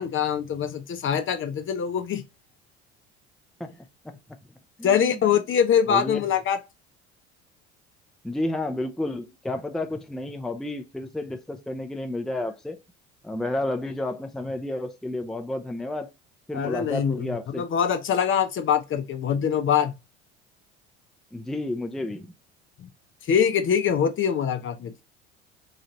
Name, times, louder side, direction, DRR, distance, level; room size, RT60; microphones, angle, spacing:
voice 1, 0.0-2.3 4.8-6.6 16.5-19.9 22.8-22.9 23.3-24.9, left 8 dB, 35° left, 0.7 m, -24 dB
voice 2, 4.8-5.2 5.9-6.2 8.2-12.8 13.2-16.1 16.5-17.6 21.3-22.3, left 1 dB, ahead, 0.6 m, -31 dB
3.2 x 2.6 x 3.9 m
hypercardioid pair, 65°, 33 cm